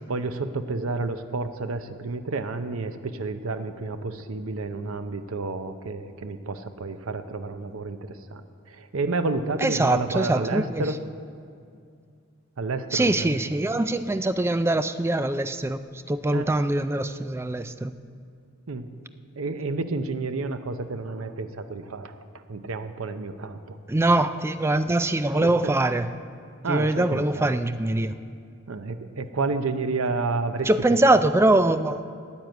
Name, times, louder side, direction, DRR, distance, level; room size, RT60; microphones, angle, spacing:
voice 1, 0.1-11.0 12.6-13.4 16.3-16.5 18.7-19.0 19.4-23.8 24.8-24.9 25.4-25.7 26.6-27.5 28.7-30.7, right 3 dB, 85° right, 10 dB, 0.7 m, -30 dB
voice 2, 9.6-10.9 12.9-15.8 16.1-17.9 23.9-26.1 26.7-28.2 30.7-32.0, right 2 dB, 10° right, 12 dB, 0.3 m, -23 dB
9.6 x 9.1 x 8.0 m, 2.3 s
head